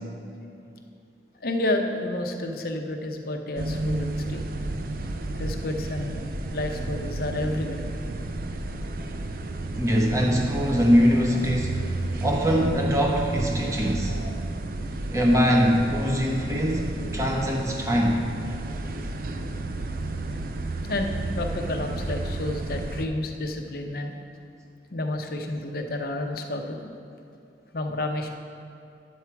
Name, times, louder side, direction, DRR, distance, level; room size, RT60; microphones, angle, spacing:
voice 1, 1.4-4.5 5.4-6.2 6.5-7.8 20.9-24.1 24.9-26.9 27.7-28.3, left 1 dB, 55° left, 4 dB, 0.8 m, -30 dB
sound 1, 3.6-23.1, right 2 dB, 55° right, 0.5 m, -32 dB
voice 2, 9.8-11.9 12.2-14.2 15.1-18.3, equal, 20° right, -1 dB, 1.1 m, -22 dB
10.0 x 7.2 x 4.6 m, 2.6 s
head